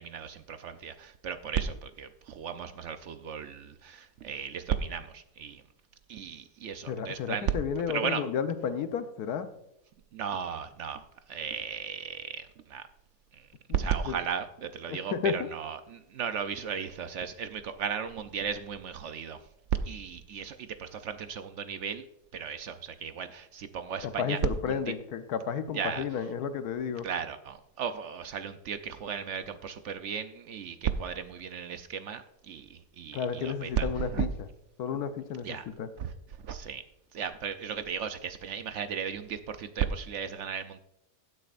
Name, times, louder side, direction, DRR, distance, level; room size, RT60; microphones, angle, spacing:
voice 1, 0.0-5.6 6.1-7.6 7.9-8.3 10.1-12.9 13.3-13.5 13.7-19.4 19.8-22.1 22.3-24.9 25.7-26.0 27.0-34.3 35.4-35.7 36.0-36.8 37.1-40.8, right 7 dB, 65° right, 10 dB, 0.8 m, -35 dB
voice 2, 6.9-9.5 13.7-13.8 14.1-14.2 14.9-15.5 24.0-27.1 33.1-34.3 34.8-35.5 35.8-35.9, left 7 dB, 75° left, 10 dB, 1.2 m, -32 dB
16.0 x 8.6 x 2.5 m, 0.82 s
omnidirectional pair, 1.7 m